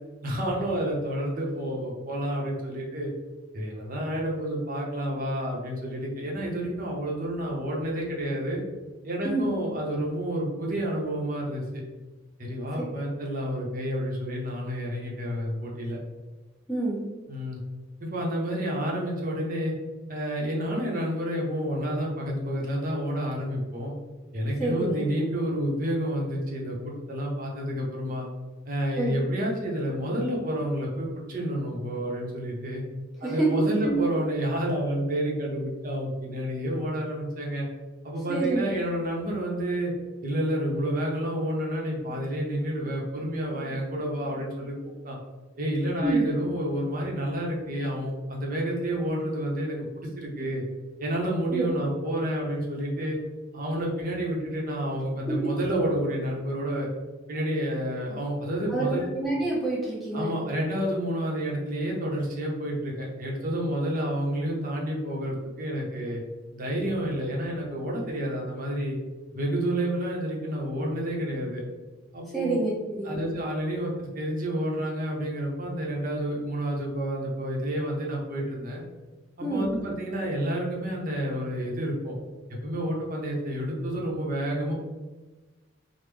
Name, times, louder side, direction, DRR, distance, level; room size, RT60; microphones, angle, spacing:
voice 1, 0.2-3.1 3.5-8.6 9.0-11.8 12.4-16.0 17.3-17.6 18.0-19.7 20.1-23.9 24.3-28.3 28.7-32.8 33.2-37.7 38.0-39.9 40.2-44.8 45.0-45.2 45.6-50.6 51.0-53.2 53.5-56.9 57.3-59.1 60.1-66.2 66.5-69.0 69.3-71.6 72.1-72.6 73.0-78.8 79.4-82.1 82.5-84.7, equal, 45° right, -2 dB, 0.7 m, -29 dB
voice 2, 16.7-17.0 24.6-25.0 29.0-29.1 33.2-33.5 33.8-34.0 38.3-38.7 46.0-46.3 51.5-51.9 58.7-60.3 72.3-73.2 79.4-79.7, right 2 dB, ahead, -7 dB, 1.0 m, -27 dB
3.5 x 2.0 x 3.3 m, 1.2 s
head